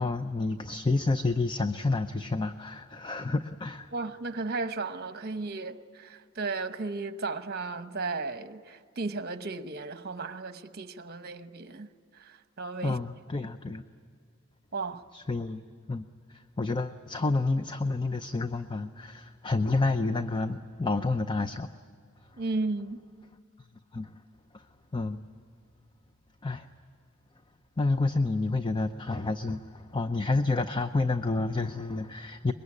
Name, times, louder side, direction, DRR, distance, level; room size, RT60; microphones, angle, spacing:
voice 1, 0.0-3.9 12.8-13.8 15.1-15.6 15.9-21.7 23.9-24.1 24.5-24.6 24.9-25.2 26.4-26.7 27.8-32.5, left 3 dB, 25° left, 10 dB, 0.6 m, -29 dB
voice 2, 3.9-11.9 12.1-13.0 13.3-13.5 14.7-15.0 22.4-23.0, right 3 dB, 50° right, 10 dB, 1.1 m, -35 dB
24.0 x 22.0 x 9.8 m, 2.2 s
head